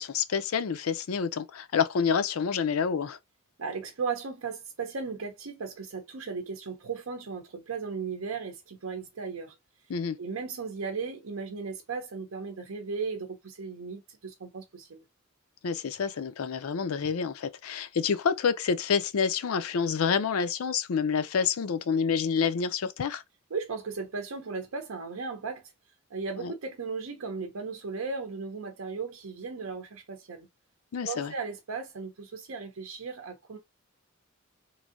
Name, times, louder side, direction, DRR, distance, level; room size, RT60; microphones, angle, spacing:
voice 1, 0.0-3.2 9.9-10.2 15.6-23.2 26.4-26.5 30.9-31.3, left 6 dB, 85° left, 0.5 m, -28 dB
voice 2, 3.6-9.6 10.2-15.0 23.5-25.7 26.1-30.5 31.1-33.6, right 5 dB, 75° right, 0.6 m, -36 dB
3.2 x 2.6 x 2.5 m
head